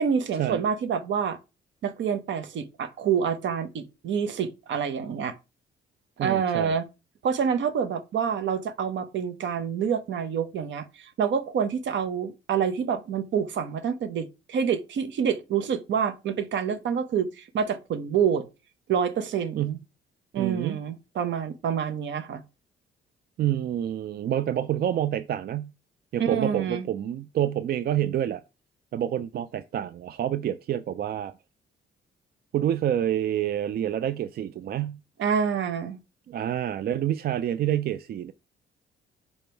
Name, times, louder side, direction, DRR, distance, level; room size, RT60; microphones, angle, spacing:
voice 1, 0.0-1.4 1.8-5.4 6.2-6.8 7.2-18.5 18.9-19.8 20.3-22.4 26.2-26.8 35.2-36.0, right 7 dB, 70° right, 0.9 m, -27 dB
voice 2, 6.2-6.8 19.6-19.8 20.4-20.8 23.4-25.7 26.1-28.4 28.9-31.3 32.5-35.0 36.3-38.3, right 11 dB, 50° right, 0.4 m, -28 dB
5.2 x 4.3 x 4.5 m
cardioid pair, 90°, 20 cm